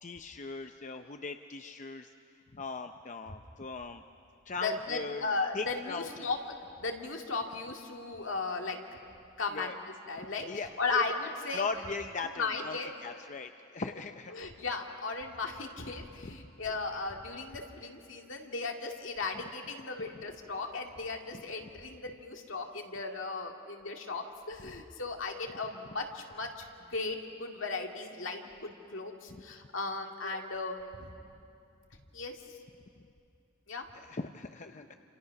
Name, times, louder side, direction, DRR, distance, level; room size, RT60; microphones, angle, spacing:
voice 1, 0.0-2.1 2.5-4.0 4.5-5.3 5.5-6.3 9.5-9.8 10.4-11.0 11.5-14.5 16.2-16.4 24.6-24.7 29.3-29.4 33.9-34.9, left 4 dB, 40° left, 7 dB, 0.6 m, -39 dB
voice 2, 4.6-6.4 6.8-8.8 9.4-9.8 10.1-11.7 12.4-12.9 14.3-31.1 32.1-32.4 33.7-33.8, left 3 dB, 70° left, 2 dB, 2.3 m, -36 dB
29.0 x 27.5 x 5.9 m, 2.5 s
head